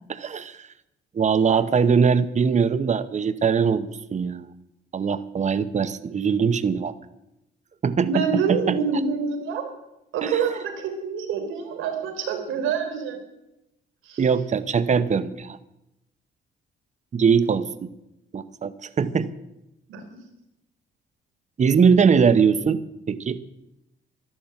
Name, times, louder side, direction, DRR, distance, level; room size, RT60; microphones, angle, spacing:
voice 1, 0.1-0.6 1.1-4.5 4.9-6.9 7.8-8.8 10.2-10.3 14.2-15.6 17.1-17.9 18.3-19.3 21.6-22.8 23.1-23.4, right 6 dB, 35° right, 14 dB, 0.9 m, -21 dB
voice 2, 8.0-9.6 10.1-13.2 14.1-14.3 19.9-20.0, right 6 dB, 90° right, 5 dB, 3.4 m, -26 dB
12.0 x 12.0 x 7.7 m, 0.89 s
cardioid pair, 90°, 20 cm